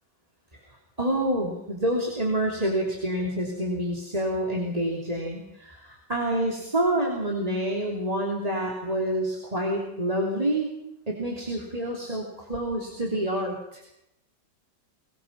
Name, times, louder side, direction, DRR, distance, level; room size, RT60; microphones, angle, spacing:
voice 1, 0.7-10.7 11.1-13.8, right 1 dB, 20° right, -1 dB, 3.3 m, -28 dB
24.0 x 20.0 x 5.9 m, 0.85 s
omnidirectional pair, 1.8 m